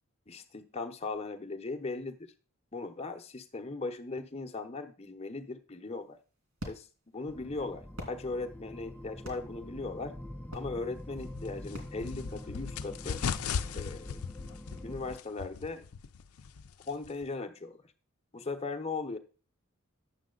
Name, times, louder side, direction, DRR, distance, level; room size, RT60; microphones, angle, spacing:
voice 1, 0.3-2.3 2.7-6.2 6.7-6.9 7.1-10.1 10.5-13.2 13.7-14.2 14.8-15.8 16.9-17.8 18.3-19.2, left 3 dB, 30° left, 6 dB, 0.8 m, -38 dB
sound 1, 5.9-12.8, equal, 70° right, 3.0 m, -49 dB
sound 2, 7.3-15.2, left 1 dB, 10° left, 0.4 m, -45 dB
sound 3, 11.1-17.3, left 6 dB, 90° left, 0.5 m, -38 dB
9.7 x 7.2 x 3.9 m, 0.38 s
head